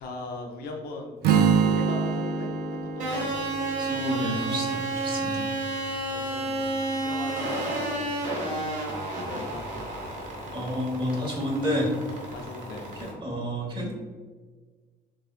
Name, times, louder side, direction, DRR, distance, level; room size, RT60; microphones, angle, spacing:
voice 1, 0.0-2.5 3.0-3.3 6.1-8.6 9.2-9.6 12.3-12.9, left 2 dB, 65° left, 2 dB, 0.7 m, -39 dB
Strum, 1.2-5.4, right 6 dB, 70° right, 0.4 m, -26 dB
sound 1, 3.0-13.1, right 2 dB, 50° right, 1.4 m, -31 dB
voice 2, 3.8-5.4 10.5-11.9 12.9-13.9, equal, 30° right, -2 dB, 1.4 m, -30 dB
6.4 x 2.3 x 2.4 m, 1.4 s
cardioid pair, 110°, 17 cm